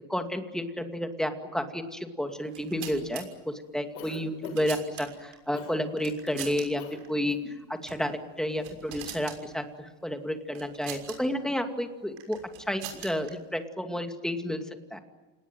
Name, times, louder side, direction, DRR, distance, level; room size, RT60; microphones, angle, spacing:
voice 1, 0.1-7.4 7.7-12.4 12.7-14.6 14.9-15.0, equal, ahead, 6 dB, 2.4 m, -31 dB
sound 1, 2.4-3.2 4.1-5.3 6.0-6.6 6.9-7.1 7.8-8.0 8.4-9.4 10.5-11.2 12.2-13.3, right 10 dB, 80° right, 6.4 m, -42 dB
Cough, 3.9-4.8 5.5-5.8 6.8-7.0 7.2-7.5, left 5 dB, 85° left, 7.5 m, -42 dB
28.5 x 19.5 x 9.2 m, 1.3 s
cardioid pair, 130°, 41 cm